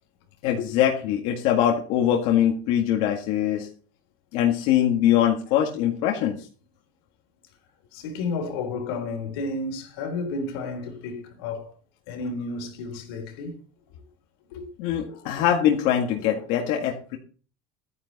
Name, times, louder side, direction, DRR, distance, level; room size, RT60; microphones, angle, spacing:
voice 1, 0.4-3.7 4.3-6.5 14.8-17.2, left 10 dB, 60° left, 1.9 m, -22 dB
voice 2, 7.9-11.7 12.1-13.6 14.5-15.0, left 3 dB, 90° left, 3.9 m, -32 dB
12.5 x 9.9 x 4.2 m
cardioid pair, 145°, 12 cm